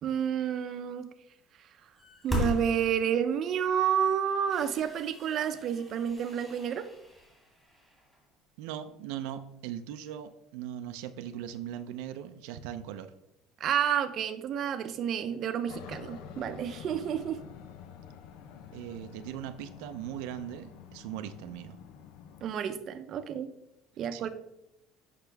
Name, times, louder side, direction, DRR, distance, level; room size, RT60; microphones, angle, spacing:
voice 1, 0.0-1.1 2.2-6.9 13.6-17.4 22.4-23.5 24.0-24.3, right 8 dB, 45° right, 8 dB, 0.6 m, -30 dB
sound 1, 1.9-3.3 3.9-4.0 4.4-8.3, left 1 dB, 5° left, 2.2 m, -38 dB
voice 2, 8.6-13.1 18.7-21.8 24.1-24.3, right 10 dB, 85° right, 8 dB, 0.5 m, -39 dB
Aircraft, 15.7-22.5, left 8 dB, 75° left, 0.7 m, -48 dB
8.2 x 5.8 x 3.4 m, 0.80 s
cardioid pair, 150°, 0 cm